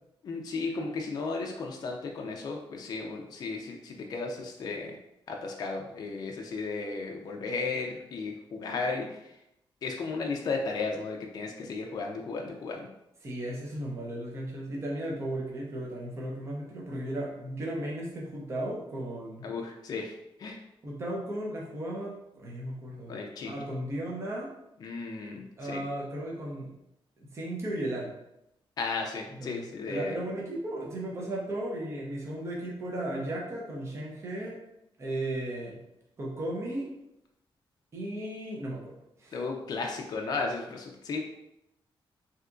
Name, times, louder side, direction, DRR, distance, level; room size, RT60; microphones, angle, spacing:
voice 1, 0.2-5.0 5.3-9.4 9.8-12.9 19.4-20.6 23.1-23.6 24.8-25.8 28.8-30.2 39.3-41.3, left 4 dB, 45° left, 1 dB, 0.4 m, -34 dB
voice 2, 13.2-19.5 20.8-23.2 23.4-24.5 25.6-26.7 27.2-28.1 29.4-29.5 29.9-34.6 35.0-35.8 36.2-36.9 37.9-38.9 39.2-39.4, right 1 dB, 30° right, -3 dB, 0.6 m, -35 dB
3.4 x 2.8 x 2.5 m, 0.84 s
wide cardioid pair, 175°, 9 cm